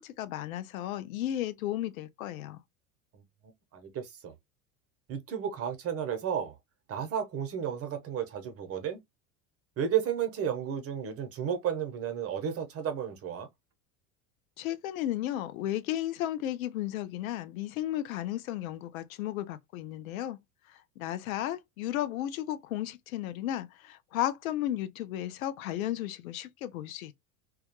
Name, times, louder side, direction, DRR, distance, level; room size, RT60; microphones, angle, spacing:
voice 1, 0.0-2.6 14.6-20.4 20.7-27.1, left 13 dB, 75° left, 0.5 m, -34 dB
voice 2, 3.7-4.3 5.1-6.5 6.9-9.0 9.8-13.5, right 8 dB, 35° right, 0.8 m, -32 dB
2.2 x 2.2 x 2.8 m
hypercardioid pair, 80°, 42 cm